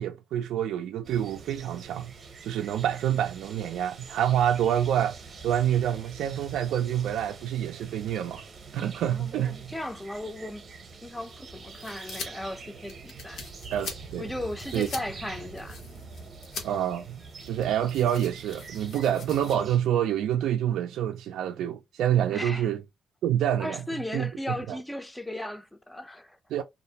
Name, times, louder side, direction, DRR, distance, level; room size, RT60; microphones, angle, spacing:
voice 1, 0.0-2.1 2.4-5.2 5.4-8.4 8.7-9.7 13.7-14.3 14.7-14.9 16.6-22.8 23.2-23.8 24.1-24.3 24.7-24.8 26.5-26.6, right 10 dB, 80° right, 0.3 m, -27 dB
sound 1, 1.0-19.8, right 4 dB, 45° right, 0.6 m, -45 dB
voice 2, 9.1-10.7 11.0-13.4 14.2-15.8 22.3-22.7 23.6-26.4, left 1 dB, 10° left, 0.4 m, -36 dB
sound 2, 11.1-19.6, left 4 dB, 75° left, 0.8 m, -44 dB
2.4 x 2.0 x 2.7 m
cardioid pair, 90°, 0 cm